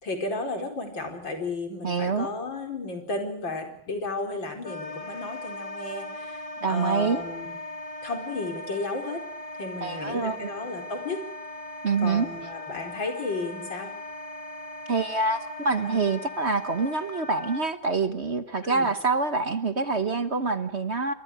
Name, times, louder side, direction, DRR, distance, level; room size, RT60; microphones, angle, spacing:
voice 1, 0.0-7.5 8.0-9.2 9.6-11.2 12.0-13.9 15.8-16.1 18.6-18.9, left 3 dB, 80° left, 4 dB, 5.5 m, -33 dB
voice 2, 1.8-2.3 6.6-7.2 9.8-10.5 11.8-12.3 14.9-21.1, right 4 dB, 40° right, 10 dB, 1.3 m, -26 dB
Wind instrument woodwind instrument, 4.6-17.7, left 2 dB, 25° left, 0.9 m, -39 dB
29.5 x 24.0 x 4.9 m, 0.70 s
omnidirectional pair, 2.0 m